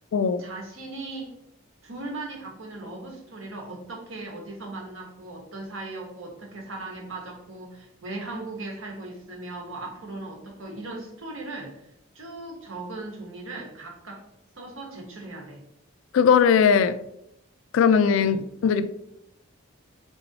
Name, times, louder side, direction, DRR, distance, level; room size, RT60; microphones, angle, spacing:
voice 1, 0.4-1.3 1.8-11.9 12.1-14.2 14.6-15.6 18.2-18.4, right 2 dB, 70° right, 1 dB, 1.1 m, -38 dB
voice 2, 16.1-17.0 17.7-18.4 18.6-18.9, left 6 dB, 70° left, 13 dB, 0.3 m, -19 dB
3.8 x 3.1 x 3.9 m, 0.79 s
head